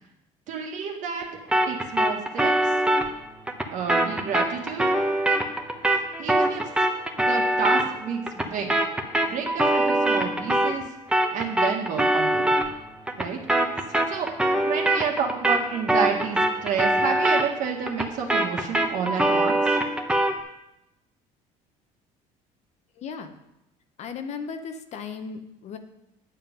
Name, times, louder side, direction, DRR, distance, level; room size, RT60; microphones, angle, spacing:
voice 1, 0.5-1.3 1.7-2.7 3.7-4.9 6.2-6.6 7.2-8.7 9.1-10.8 11.3-12.5 13.2-13.4 14.1-14.3 14.6-19.7, right 6 dB, 60° right, 2 dB, 1.9 m, -30 dB
sound 1, 1.5-10.8 11.1-20.4, right 1 dB, 5° right, 0.9 m, -24 dB
voice 2, 23.0-23.4 24.0-25.8, left 5 dB, 50° left, 8 dB, 1.0 m, -36 dB
9.4 x 7.4 x 5.4 m, 0.87 s
cardioid pair, 120°, 14 cm